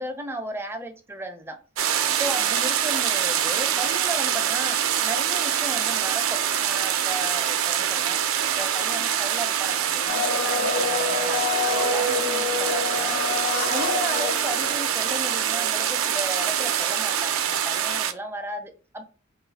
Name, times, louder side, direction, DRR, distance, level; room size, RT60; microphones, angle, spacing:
voice 1, 0.0-1.6 2.1-8.2 8.6-19.0, right 1 dB, 10° right, 0.4 m, -35 dB
sound 1, 1.8-18.1, right 9 dB, 80° right, 0.4 m, -25 dB
Domestic sounds home sounds, 10.1-15.3 15.6-15.7, left 4 dB, 65° left, 0.5 m, -27 dB
2.7 x 2.4 x 3.9 m
head